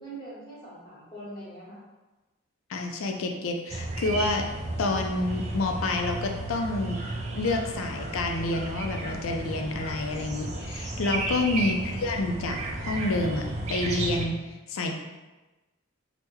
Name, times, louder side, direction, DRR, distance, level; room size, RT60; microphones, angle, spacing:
voice 1, 0.0-1.8, right 1 dB, 20° left, -9 dB, 0.9 m, -42 dB
voice 2, 2.7-4.5 4.8-7.0 7.3-13.4 13.7-14.3 14.7-14.9, left 2 dB, 80° left, 3 dB, 0.4 m, -28 dB
sound 1, 3.7-14.2, right 2 dB, 35° right, 0.3 m, -33 dB
3.4 x 2.0 x 3.0 m, 1.1 s
head